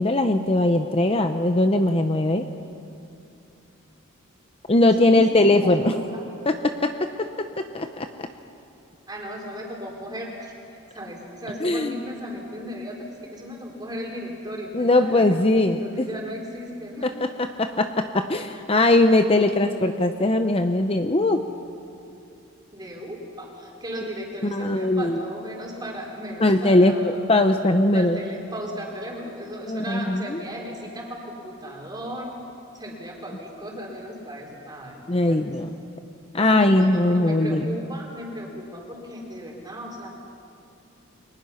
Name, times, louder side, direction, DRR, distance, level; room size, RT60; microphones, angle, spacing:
voice 1, 0.0-2.4 4.7-5.9 6.4-6.9 7.2-8.3 11.6-12.0 14.7-16.1 17.0-21.4 24.4-25.2 26.4-28.2 29.7-30.4 35.1-35.8 36.3-37.8, left 2 dB, 30° left, 7 dB, 0.7 m, -20 dB
voice 2, 5.0-6.3 9.1-10.5 10.9-17.1 22.7-27.1 27.9-32.3 32.7-35.5 36.4-40.1, equal, 20° right, -2 dB, 4.3 m, -36 dB
29.5 x 23.5 x 5.8 m, 2.7 s
head